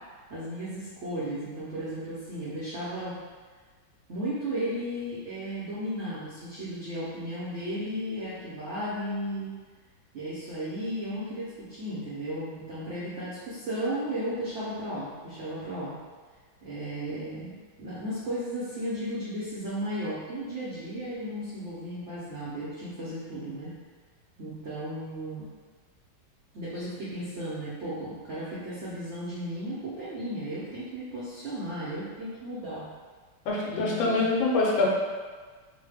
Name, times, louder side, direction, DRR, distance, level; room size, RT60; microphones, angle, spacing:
voice 1, 0.1-3.2 4.1-9.5 10.1-15.9 16.6-23.7 24.4-25.4 26.5-32.8 33.6-34.3, equal, 75° right, -9 dB, 0.6 m, -35 dB
voice 2, 33.5-34.9, left 3 dB, 80° left, -3 dB, 1.4 m, -25 dB
3.2 x 2.1 x 3.3 m, 1.5 s
omnidirectional pair, 2.1 m